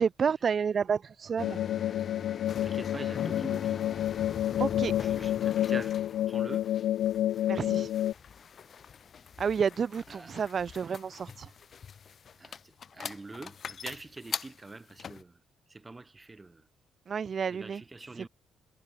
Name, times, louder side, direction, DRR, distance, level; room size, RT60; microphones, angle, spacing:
voice 1, 0.0-1.6 4.6-4.9 7.5-7.9 9.4-11.5 17.1-17.8 18.1-18.3, right 6 dB, 45° right, 0.4 m, -30 dB
sound 1, 1.4-8.1, left 12 dB, 80° left, 1.7 m, -29 dB
sound 2, 1.4-15.2, left 7 dB, 50° left, 1.6 m, -42 dB
voice 2, 2.6-3.8 5.0-6.0 6.3-6.7 10.1-10.3 12.4-12.6 12.9-15.3 15.7-16.6 17.5-18.3, right 3 dB, 20° right, 5.3 m, -44 dB
cardioid pair, 90°, 0 cm